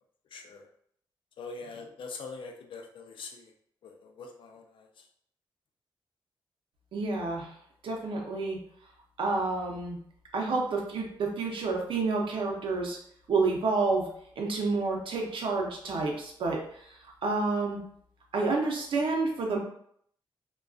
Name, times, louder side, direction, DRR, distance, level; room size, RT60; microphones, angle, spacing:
voice 1, 0.3-0.7 1.4-3.5 3.8-5.1, left 4 dB, 65° left, 3 dB, 0.4 m, -43 dB
voice 2, 6.9-7.5 7.8-8.6 9.2-10.0 10.3-13.0 13.3-14.1 14.4-17.8 18.3-19.6, right 3 dB, 70° right, 0 dB, 0.6 m, -29 dB
2.5 x 2.2 x 2.3 m, 0.66 s
wide cardioid pair, 140°, 9 cm